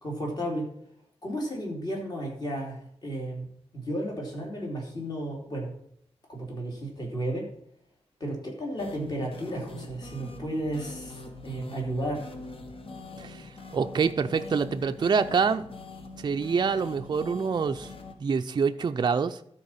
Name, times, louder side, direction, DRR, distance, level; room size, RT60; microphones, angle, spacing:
voice 1, 0.0-0.7 1.2-3.5 3.7-5.7 6.3-7.5 8.2-12.2, right 1 dB, 40° left, -1 dB, 2.9 m, -33 dB
sound 1, 8.8-18.1, left 3 dB, 55° left, 1.2 m, -43 dB
voice 2, 13.2-15.7 16.2-17.9 18.2-19.4, right 5 dB, 40° right, 8 dB, 0.4 m, -26 dB
13.0 x 4.5 x 5.6 m, 0.67 s
wide cardioid pair, 145°, 11 cm